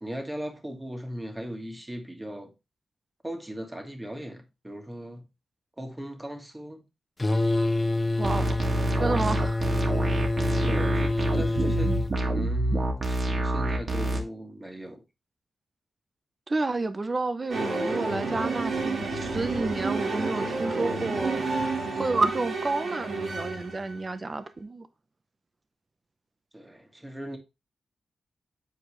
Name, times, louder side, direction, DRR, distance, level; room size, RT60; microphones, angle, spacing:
voice 1, 0.0-2.5 3.2-5.2 5.8-6.8 10.6-15.0 26.5-27.4, equal, 15° right, 1.7 m, -38 dB
sound 1, 7.2-12.1, left 2 dB, 25° left, 0.4 m, -27 dB
voice 2, 8.2-8.5 9.0-9.6 16.5-21.4 21.9-24.9, right 3 dB, 35° right, 0.8 m, -30 dB
sound 2, 8.2-14.2, right 2 dB, 55° right, 1.7 m, -27 dB
sound 3, 17.5-24.1, right 3 dB, 85° right, 1.9 m, -30 dB
8.2 x 4.5 x 3.2 m
cardioid pair, 70°, 0 cm